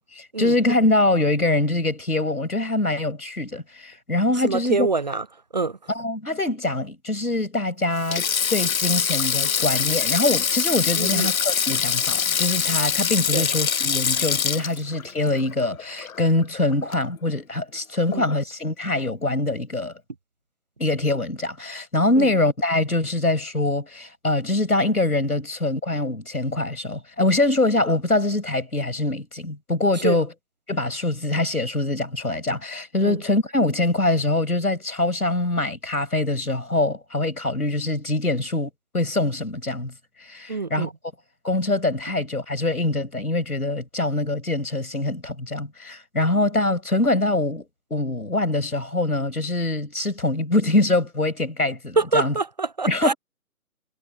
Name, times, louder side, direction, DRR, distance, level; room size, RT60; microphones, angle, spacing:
voice 1, 0.1-4.9 5.9-8.2 8.5-19.9 20.8-30.3 30.7-39.9 40.2-40.9 41.4-52.3 52.9-53.2, left 2 dB, 90° left, 6.1 m, -24 dB
voice 2, 4.4-5.2 5.5-5.8 11.0-11.3 13.3-13.4 18.1-18.3 22.2-22.3 30.0-30.2 33.0-33.2 40.5-40.9 52.0-53.1, right 3 dB, 30° right, 0.6 m, -25 dB
Sink (filling or washing), 8.0-16.4 16.7-16.9 18.1-18.4, left 7 dB, 70° left, 0.8 m, -24 dB
figure-of-eight pair, 150°, 43 cm